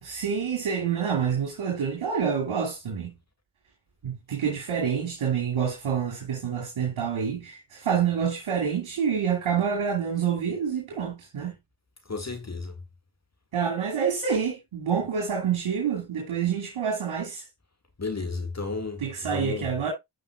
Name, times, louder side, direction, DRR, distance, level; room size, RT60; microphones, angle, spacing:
voice 1, 0.0-3.1 4.0-11.5 13.5-17.4 19.0-19.9, right 7 dB, 75° right, 2.7 m, -27 dB
voice 2, 12.1-12.7 18.0-19.0 19.3-19.6, left 3 dB, 35° left, 2.0 m, -32 dB
13.5 x 5.4 x 2.3 m
supercardioid pair, 40°, 47 cm